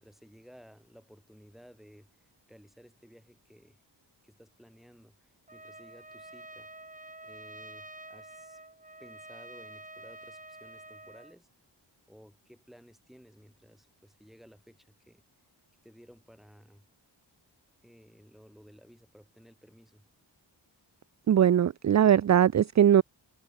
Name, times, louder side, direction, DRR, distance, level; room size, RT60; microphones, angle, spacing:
voice 1, 0.0-3.8 4.2-6.7 7.2-8.6 9.0-11.5 12.1-15.2 15.8-16.9 17.8-20.1, equal, ahead, 7.3 m, -56 dB
Trumpet, 5.5-11.4, right 2 dB, 20° right, 2.8 m, -48 dB
voice 2, 21.3-23.0, right 9 dB, 40° right, 0.4 m, -21 dB
wide cardioid pair, 100°, 43 cm